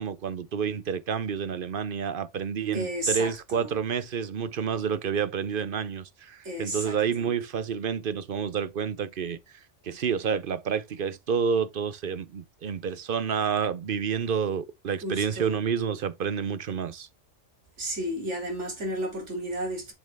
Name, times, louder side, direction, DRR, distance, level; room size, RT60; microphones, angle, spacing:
voice 1, 0.0-9.4 9.8-17.1, right 7 dB, 55° right, 0.8 m, -29 dB
voice 2, 2.7-3.7 6.4-7.3 15.0-15.6 17.8-19.9, right 1 dB, 75° right, 3.2 m, -32 dB
7.3 x 5.3 x 3.5 m
omnidirectional pair, 1.2 m